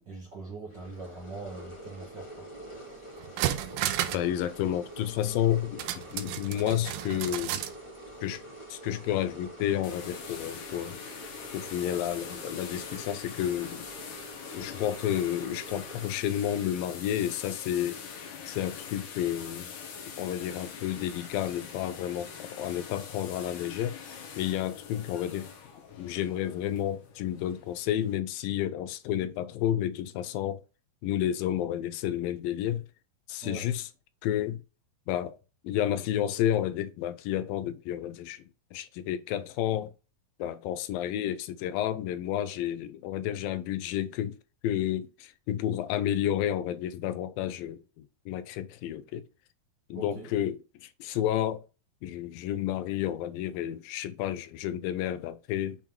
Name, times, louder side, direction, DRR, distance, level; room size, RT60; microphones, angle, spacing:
voice 1, 0.0-2.5 33.4-33.7 49.9-50.3, right 3 dB, 55° right, 1.2 m, -42 dB
sound 1, 0.7-16.1, right 1 dB, 20° left, 0.7 m, -46 dB
sound 2, 2.8-2.9 3.2-4.3 4.6-4.7 5.8-7.8 8.1-8.2, right 12 dB, 85° right, 2.4 m, -32 dB
voice 2, 4.1-7.6 8.2-8.4 8.7-11.0 11.5-13.9 14.5-18.0 18.5-19.7 20.2-24.0 24.4-25.5 26.0-30.6 31.0-32.8 33.3-33.9 34.2-34.6 35.1-35.4 35.6-38.4 38.7-39.9 40.4-44.4 44.6-49.2 49.9-51.6 52.0-55.8, left 11 dB, 80° left, 2.3 m, -31 dB
sound 3, 9.8-28.2, left 6 dB, 65° left, 2.6 m, -44 dB
7.2 x 3.7 x 4.5 m
omnidirectional pair, 4.3 m